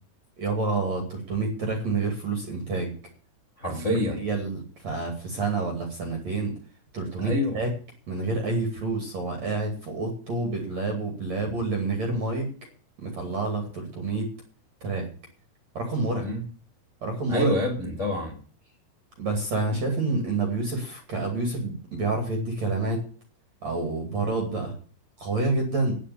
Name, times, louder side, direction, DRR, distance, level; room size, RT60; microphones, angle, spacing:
voice 1, 0.4-2.9 3.7-3.8 4.2-6.5 6.9-7.7 8.1-12.5 13.0-14.3 14.8-15.1 15.8-16.3 17.0-17.5 19.2-23.0 23.6-24.7 25.2-25.9, right 3 dB, 45° right, 2 dB, 3.3 m, -28 dB
voice 2, 3.6-4.2 7.2-7.6 16.2-16.4 17.3-18.4, left 1 dB, 20° left, 1 dB, 2.0 m, -26 dB
9.9 x 8.7 x 8.5 m, 0.42 s
omnidirectional pair, 5.0 m